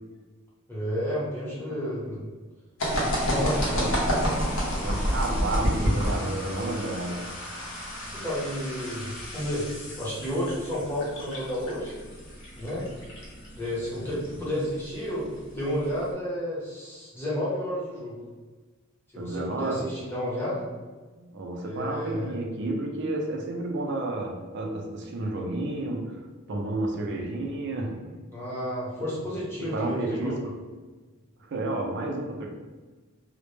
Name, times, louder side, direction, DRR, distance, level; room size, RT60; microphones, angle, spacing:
voice 1, 0.7-2.3 3.0-3.8 8.1-9.7 10.0-11.9 12.5-12.8 13.5-18.2 19.1-20.6 21.6-22.3 28.3-30.3, equal, 10° left, -9 dB, 0.8 m, -31 dB
sound 1, 2.8-16.1, equal, 65° left, 0.7 m, -31 dB
voice 2, 4.8-7.3 14.0-14.1 19.2-19.8 21.1-26.2 26.5-28.1 29.6-30.4 31.5-32.5, right 2 dB, 55° right, 1 dB, 0.4 m, -31 dB
2.1 x 2.1 x 3.0 m, 1.3 s
head